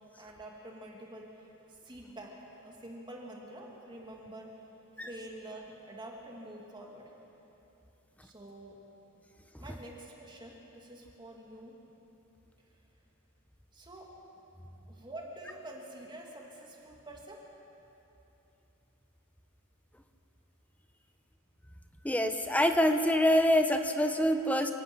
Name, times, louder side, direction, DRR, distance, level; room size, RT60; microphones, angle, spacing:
voice 1, 0.2-4.5 5.0-7.1 8.2-8.8 9.6-11.7 13.7-14.1 14.9-17.4, right 1 dB, 20° right, -1 dB, 2.7 m, -47 dB
voice 2, 22.0-24.7, equal, 5° left, 6 dB, 1.0 m, -25 dB
28.5 x 17.0 x 6.3 m, 3.0 s
head